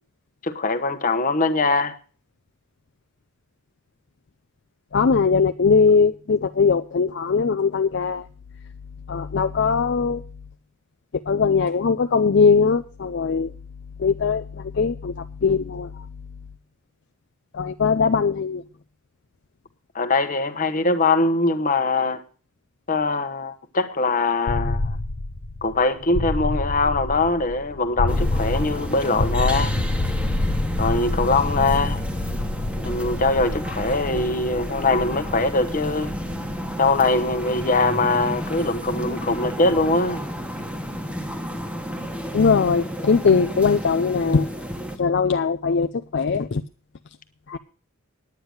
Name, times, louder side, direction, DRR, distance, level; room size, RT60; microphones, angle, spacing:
voice 1, 0.4-2.0 19.9-22.2 22.9-25.0 25.6-29.7 30.8-32.0 32.8-36.1 36.8-40.2, left 3 dB, 40° left, 1.0 m, -22 dB
voice 2, 4.9-8.2 9.1-10.2 11.3-13.5 14.0-15.1 15.4-15.9 17.5-18.6 42.3-44.5 45.0-46.6 47.5-47.6, left 5 dB, 55° left, 0.5 m, -20 dB
sound 1, 24.5-40.3, left 2 dB, 80° left, 0.9 m, -28 dB
sound 2, 28.1-45.0, equal, 5° right, 1.3 m, -32 dB
9.9 x 9.7 x 6.3 m
head